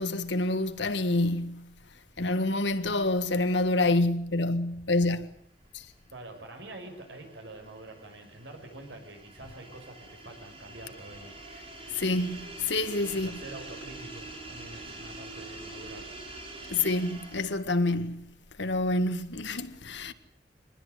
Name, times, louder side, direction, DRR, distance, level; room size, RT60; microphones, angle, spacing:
voice 1, 0.0-1.7 2.2-5.3 5.7-5.8 11.9-13.4 16.7-18.3 18.6-20.1, left 2 dB, 85° left, 1.8 m, -27 dB
sound 1, 5.8-17.7, right 2 dB, 35° right, 6.4 m, -45 dB
voice 2, 6.1-11.3 13.1-16.1, right 2 dB, 85° right, 6.6 m, -46 dB
24.5 x 20.0 x 8.3 m
head